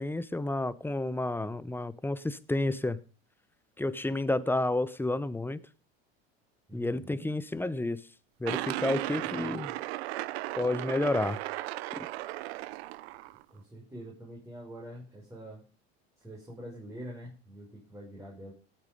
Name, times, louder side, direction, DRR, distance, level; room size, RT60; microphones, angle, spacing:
voice 1, 0.0-3.0 3.8-5.6 6.7-8.0 8.4-9.7 10.6-11.4 12.0-12.1, left 2 dB, 5° left, 0.9 m, -30 dB
voice 2, 6.7-7.2 13.5-15.6 16.2-18.5, right 1 dB, 10° right, 5.7 m, -45 dB
sound 1, 8.4-13.4, right 18 dB, 75° right, 0.8 m, -36 dB
17.5 x 9.0 x 5.3 m
supercardioid pair, 100°, 31 cm